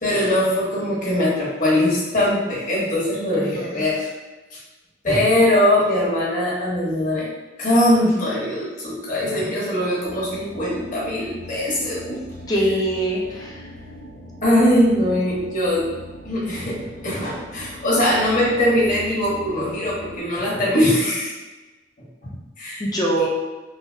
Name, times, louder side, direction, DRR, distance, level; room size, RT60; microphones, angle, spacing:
voice 1, 0.0-4.1 4.5-4.6 5.0-7.3 7.6-12.2 14.4-15.9 16.2-21.3 22.6-22.8, left 1 dB, 50° left, -6 dB, 1.1 m, -21 dB
voice 2, 3.3-3.8 12.5-13.6 22.8-23.3, right 1 dB, 20° left, -3 dB, 0.5 m, -23 dB
sound 1, 10.0-20.2, equal, 75° left, 0.6 m, -40 dB
3.3 x 2.7 x 2.6 m, 1.2 s
head